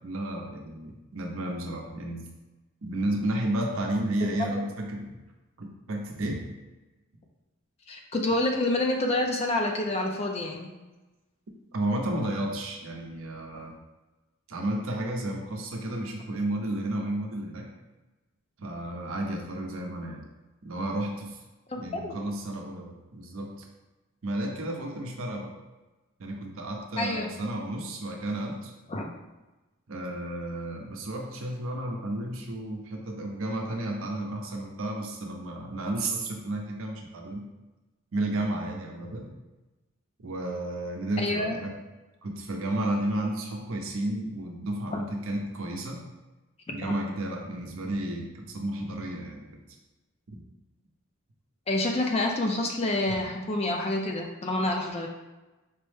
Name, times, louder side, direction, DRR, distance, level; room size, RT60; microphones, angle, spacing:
voice 1, 0.0-2.3 2.8-5.1 5.6-6.4 11.7-13.7 14.5-17.7 18.6-20.2 20.6-21.4 21.7-23.5 24.2-25.5 26.2-28.7 29.9-37.5 38.1-39.3 40.2-41.8 42.2-46.0 46.7-49.4 50.3-50.4, right 1 dB, 75° right, 1 dB, 0.6 m, -32 dB
voice 2, 4.2-4.6 7.9-10.7 21.7-22.2 27.0-27.3 28.9-29.1 41.2-41.6 44.9-45.0 46.7-46.9 51.7-55.1, left 2 dB, 30° left, 2 dB, 0.4 m, -28 dB
4.5 x 2.1 x 3.2 m, 1.1 s
head